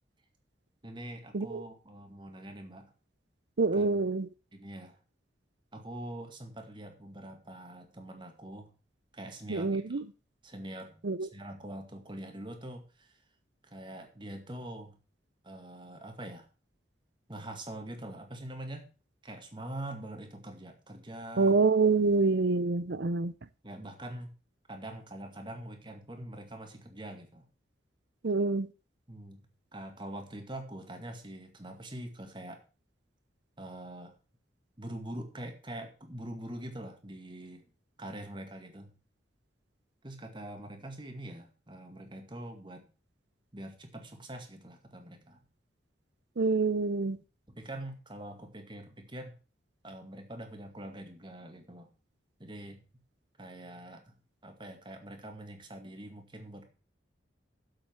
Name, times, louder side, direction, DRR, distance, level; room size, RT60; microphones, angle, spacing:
voice 1, 0.8-2.9 3.7-4.0 4.5-5.0 5.7-8.7 9.1-10.0 10.4-13.2 13.6-15.0 15.4-16.5 17.3-18.9 19.2-21.6 21.9-22.3 23.6-24.3 24.7-27.5 29.1-29.5 29.7-32.6 33.6-34.2 34.8-37.7 38.0-38.9 40.0-42.9 43.5-45.4 47.5-49.4 49.8-51.9 52.4-52.8 53.4-54.1 54.4-56.6, right 1 dB, 25° right, 5 dB, 2.1 m, -44 dB
voice 2, 3.6-4.3 9.5-10.0 11.0-11.3 21.4-23.3 28.2-28.7 46.4-47.2, right 3 dB, 65° right, 15 dB, 0.6 m, -26 dB
7.7 x 7.6 x 7.2 m, 0.34 s
head